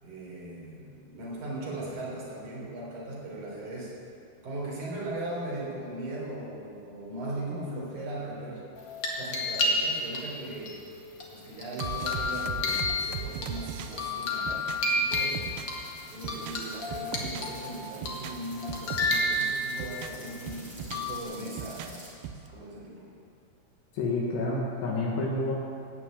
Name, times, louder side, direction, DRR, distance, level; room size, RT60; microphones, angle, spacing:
voice 1, 0.0-3.9 4.4-8.6 9.2-10.7 11.3-15.5 16.1-22.1 22.4-23.1, right 1 dB, 45° right, -5 dB, 4.8 m, -38 dB
sound 1, 8.8-10.2 10.7-13.5 13.9-15.8 16.2-17.7 18.1-18.3 18.6-19.9 20.9-21.2, left 2 dB, 55° left, 1.3 m, -30 dB
sound 2, 11.8-15.8 16.1-17.6 17.9-19.4 19.7-21.1 21.5-22.5, right 8 dB, 75° right, 2.3 m, -39 dB
sound 3, 15.1-22.1, right 1 dB, 5° right, 3.8 m, -49 dB
voice 2, 23.9-25.5, left 2 dB, 75° left, -4 dB, 3.8 m, -29 dB
17.5 x 7.0 x 8.2 m, 2.4 s
omnidirectional pair, 5.0 m